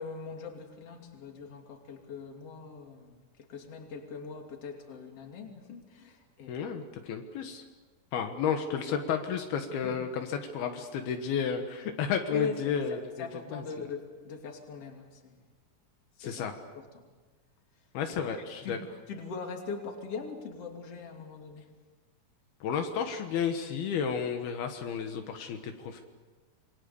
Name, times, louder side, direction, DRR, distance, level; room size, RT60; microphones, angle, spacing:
voice 1, 0.0-6.6 8.9-9.0 9.8-10.0 12.3-15.4 16.2-17.0 18.6-18.8 19.1-21.7, left 5 dB, 40° left, 3 dB, 3.5 m, -41 dB
voice 2, 6.5-7.6 8.1-13.0 13.5-13.6 16.2-16.5 17.9-18.8 22.6-26.0, left 7 dB, 80° left, 5 dB, 3.3 m, -32 dB
27.5 x 23.0 x 7.1 m, 1.4 s
omnidirectional pair, 4.5 m